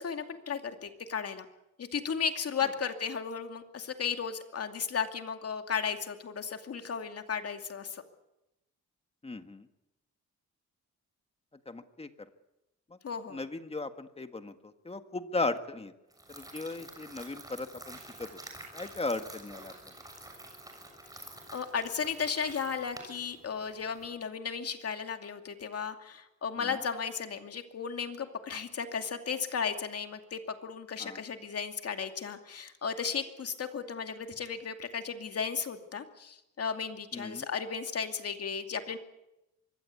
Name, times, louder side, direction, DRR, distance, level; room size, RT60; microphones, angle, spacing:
voice 1, 0.0-1.5 1.8-8.0 13.0-13.4 21.5-39.0, left 6 dB, 50° left, 6 dB, 2.6 m, -35 dB
voice 2, 9.2-9.7 11.7-12.3 12.9-13.0 13.3-15.9 16.3-18.4 18.7-19.9 26.6-26.8 31.0-31.2 37.1-37.5, left 3 dB, 20° left, 8 dB, 1.7 m, -37 dB
sound 1, 16.1-24.1, right 1 dB, 10° right, 6.6 m, -49 dB
24.5 x 21.5 x 8.5 m, 0.90 s
wide cardioid pair, 130°, 30 cm